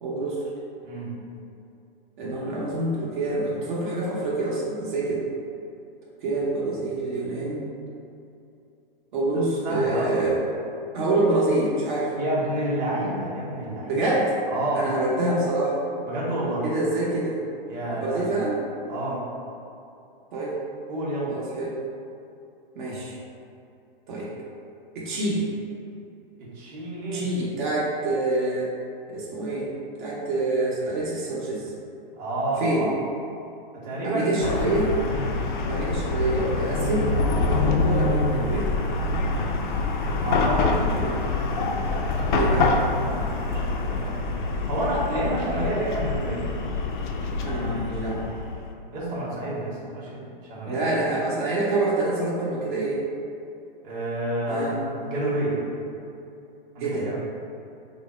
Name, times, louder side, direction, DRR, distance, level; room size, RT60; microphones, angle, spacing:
voice 1, 0.0-0.4 2.2-5.2 6.2-7.7 9.1-10.4 10.9-12.1 13.8-14.4 14.7-15.8 16.6-17.4 17.9-18.6 20.3-20.5 21.3-21.7 22.8-23.2 24.1-24.3 24.9-25.5 27.1-28.7 29.1-29.7 30.0-31.7 32.6-32.9 34.0-35.0 35.7-38.7 41.0-41.1 42.3-42.7 47.4-48.2 50.7-53.0 54.5-54.8 56.8-57.1, right 2 dB, 55° right, -6 dB, 0.8 m, -26 dB
voice 2, 9.6-10.1 12.2-14.0 14.5-14.9 16.0-16.6 17.7-18.4 18.9-19.2 20.9-21.3 26.4-27.3 32.2-32.9 33.7-34.8 35.1-35.4 37.4-37.7 40.2-41.2 41.8-42.4 42.7-46.5 48.9-50.9 53.8-55.6 56.7-57.2, right 1 dB, 30° right, -7 dB, 0.9 m, -29 dB
Chatter / Car passing by / Traffic noise roadway noise, 34.4-48.7, left 3 dB, 55° left, 0.5 m, -25 dB
3.5 x 2.0 x 4.1 m, 2.6 s
hypercardioid pair, 135°, 29 cm